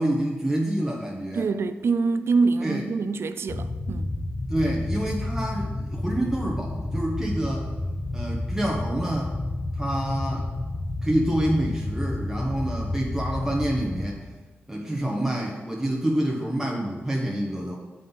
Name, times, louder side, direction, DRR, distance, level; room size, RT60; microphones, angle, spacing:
voice 1, 0.0-1.5 2.6-2.9 4.5-7.7 8.1-9.3 9.8-10.5 11.0-14.2 14.7-17.8, right 1 dB, 10° right, 1.0 m, -27 dB
voice 2, 1.3-4.1, right 4 dB, 65° right, 0.4 m, -25 dB
sound 1, 3.5-14.1, left 2 dB, 45° left, 0.9 m, -30 dB
7.5 x 3.9 x 5.5 m
cardioid pair, 65°, 5 cm